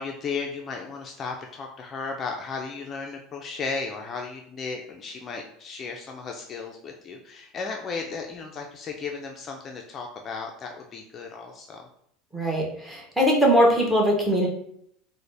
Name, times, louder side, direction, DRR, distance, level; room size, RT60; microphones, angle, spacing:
voice 1, 0.0-11.9, left 4 dB, 35° left, 2 dB, 0.4 m, -35 dB
voice 2, 12.3-14.5, equal, 5° right, -2 dB, 1.0 m, -21 dB
3.8 x 2.1 x 3.3 m, 0.70 s
supercardioid pair, 125°, 0 cm